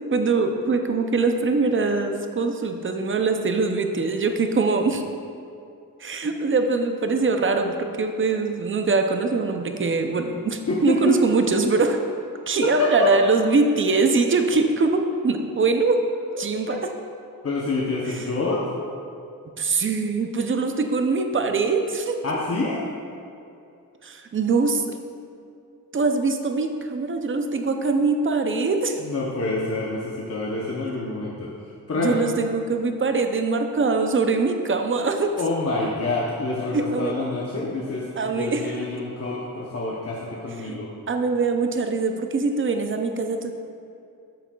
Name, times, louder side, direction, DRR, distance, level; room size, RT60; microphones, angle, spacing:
voice 1, 0.1-5.0 6.0-12.0 12.5-16.0 16.4-16.8 19.6-22.2 24.0-24.8 25.9-29.0 32.0-35.3 36.7-37.2 38.2-38.7 40.6-40.8 41.1-43.5, right 4 dB, 35° right, 5 dB, 0.5 m, -23 dB
voice 2, 10.7-11.2 12.6-13.1 16.1-16.4 16.7-16.8 17.4-18.7 22.2-22.8 29.0-31.5 31.9-32.2 35.4-40.9, left 3 dB, 45° left, -4 dB, 0.7 m, -27 dB
8.9 x 7.5 x 2.3 m, 2.5 s
wide cardioid pair, 170°, 36 cm